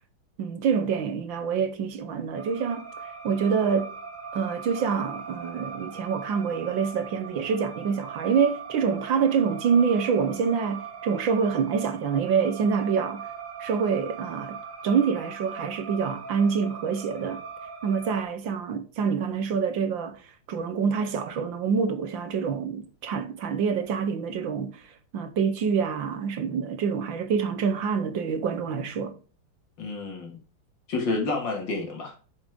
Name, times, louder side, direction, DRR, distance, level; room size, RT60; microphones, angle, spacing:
voice 1, 0.4-3.9 4.3-13.3 13.6-17.4 17.8-20.2 20.5-24.9 25.1-29.2, right 6 dB, 65° right, 1.6 m, -26 dB
sound 1, 2.4-18.2, right 6 dB, 30° right, 1.2 m, -40 dB
voice 2, 29.8-30.4 30.9-32.2, left 3 dB, 60° left, 2.7 m, -29 dB
8.6 x 6.5 x 3.7 m
omnidirectional pair, 2.3 m